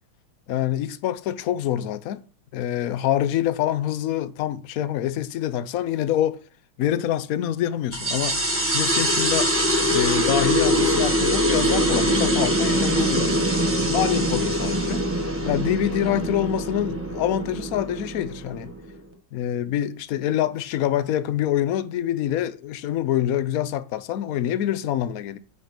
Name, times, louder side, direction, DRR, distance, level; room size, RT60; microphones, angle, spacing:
voice 1, 0.5-2.3 2.5-6.4 6.8-9.5 9.9-13.3 13.9-15.1 15.5-18.7 19.3-25.4, left 11 dB, 75° left, 0.8 m, -26 dB
sound 1, 7.9-18.9, equal, 10° right, 1.2 m, -23 dB
8.2 x 5.2 x 5.9 m
omnidirectional pair, 2.3 m